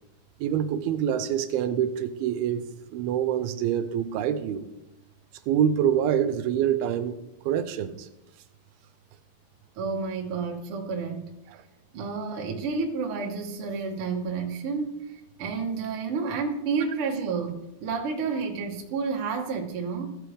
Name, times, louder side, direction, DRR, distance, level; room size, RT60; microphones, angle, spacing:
voice 1, 0.4-4.7 5.5-8.1, right 9 dB, 85° right, 11 dB, 2.4 m, -26 dB
voice 2, 9.8-11.2 11.9-15.0 15.4-20.2, right 5 dB, 65° right, 1 dB, 1.4 m, -30 dB
16.0 x 6.3 x 3.3 m, 0.92 s
omnidirectional pair, 4.4 m